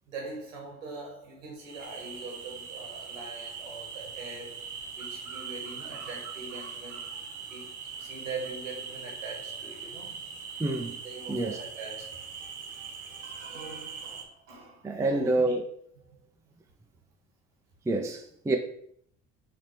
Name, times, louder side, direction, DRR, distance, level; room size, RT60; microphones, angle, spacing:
voice 1, 0.1-4.7 5.0-7.1 7.5-7.7 8.0-10.4 11.0-15.6, right 3 dB, 90° right, 1.3 m, -43 dB
sound 1, 1.6-14.2, right 6 dB, 50° right, 1.0 m, -41 dB
voice 2, 10.6-11.0 11.3-11.6 14.8-15.6 17.9-18.6, right 2 dB, 10° right, 0.5 m, -27 dB
5.0 x 2.8 x 3.1 m
hypercardioid pair, 65°, 38 cm